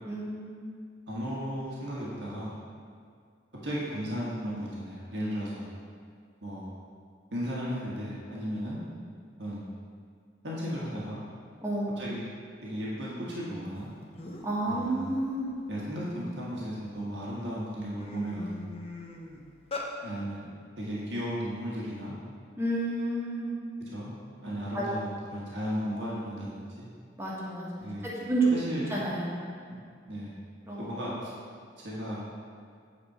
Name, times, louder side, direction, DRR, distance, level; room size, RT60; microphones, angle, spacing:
voice 1, 0.0-0.8 11.6-11.9 14.4-15.5 22.6-23.6 24.7-24.8 27.2-27.8 28.2-28.5 28.9-29.6 30.6-30.9, right 2 dB, 15° right, -6 dB, 1.4 m, -30 dB
voice 2, 1.1-2.5 3.6-5.7 6.4-6.7 7.3-8.8 9.4-9.7 10.4-11.2 12.0-12.2 12.6-13.9 14.6-15.1 15.7-18.6 20.0-20.5 20.8-22.1 23.9-24.1 24.4-26.9 27.8-28.1 28.5-29.0 29.7-29.8 30.1-30.3 30.8-31.3 31.8-32.3, equal, 80° right, -6 dB, 1.5 m, -35 dB
sound 1, 13.8-13.9 14.2-14.6 15.1-16.6 17.2-17.4 17.7-19.9, left 2 dB, 35° left, 0.8 m, -40 dB
8.5 x 4.3 x 5.5 m, 2.1 s
head